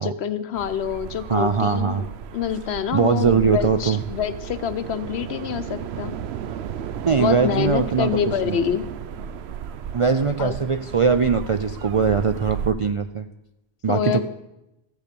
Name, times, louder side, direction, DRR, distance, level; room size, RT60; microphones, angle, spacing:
voice 1, 0.0-2.1 2.3-6.1 7.2-8.8 10.4-10.6 13.9-14.2, left 8 dB, 75° left, 12 dB, 1.0 m, -26 dB
sound 1, 0.6-12.7, right 8 dB, 75° right, 0.9 m, -34 dB
voice 2, 1.3-2.0 2.9-4.0 7.1-8.6 9.9-13.2 13.8-14.2, right 5 dB, 50° right, 9 dB, 0.4 m, -21 dB
14.0 x 8.2 x 6.8 m, 0.92 s
omnidirectional pair, 1.1 m